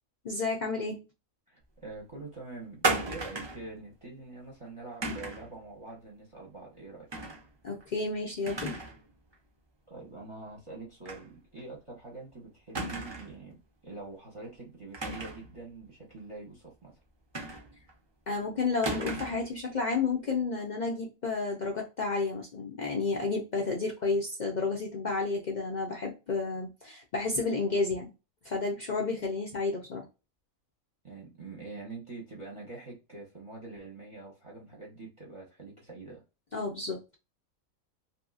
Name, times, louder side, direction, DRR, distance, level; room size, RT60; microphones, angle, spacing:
voice 1, 0.2-1.0 7.6-8.8 18.3-28.1 28.4-30.0 36.5-37.0, left 3 dB, 65° left, -1 dB, 0.4 m, -31 dB
voice 2, 1.5-7.1 9.9-13.6 13.8-16.9 31.0-36.2, right 3 dB, 30° right, -1 dB, 0.7 m, -45 dB
sound 1, 2.8-3.7 5.0-5.5 7.1-7.4 7.8-7.9 8.5-9.0 9.3-9.4 11.0-11.3 11.6-11.7 12.7-13.4 14.9-15.5 17.3-17.9 18.8-19.5, right 2 dB, 45° right, 0.3 m, -34 dB
2.8 x 2.6 x 2.4 m, 0.29 s
omnidirectional pair, 1.5 m